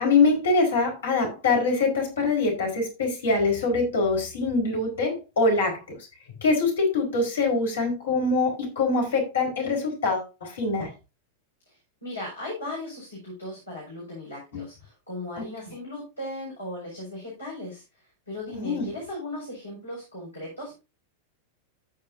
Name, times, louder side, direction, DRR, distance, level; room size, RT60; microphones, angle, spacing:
voice 1, 0.0-5.8 6.4-10.9 15.4-15.5 18.5-18.9, left 3 dB, 65° left, 2 dB, 4.9 m, -24 dB
voice 2, 11.7-17.8 18.3-20.8, left 1 dB, 80° left, -4 dB, 5.6 m, -37 dB
14.5 x 6.8 x 2.7 m, 0.27 s
figure-of-eight pair, 90°, 0 cm